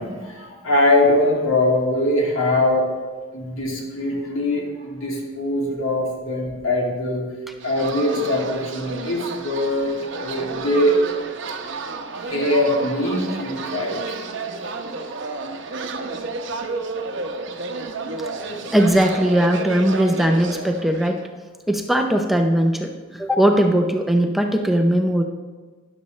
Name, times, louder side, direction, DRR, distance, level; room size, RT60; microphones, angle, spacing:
voice 1, 0.0-2.9 3.3-7.2 7.6-11.0 12.3-14.0, left 1 dB, 85° left, -1 dB, 2.6 m, -22 dB
sound 1, 7.6-21.3, right 3 dB, 65° right, 0.9 m, -31 dB
voice 2, 18.4-21.2 21.7-25.2, right 1 dB, ahead, 3 dB, 0.6 m, -19 dB
12.5 x 11.0 x 3.2 m, 1.4 s
head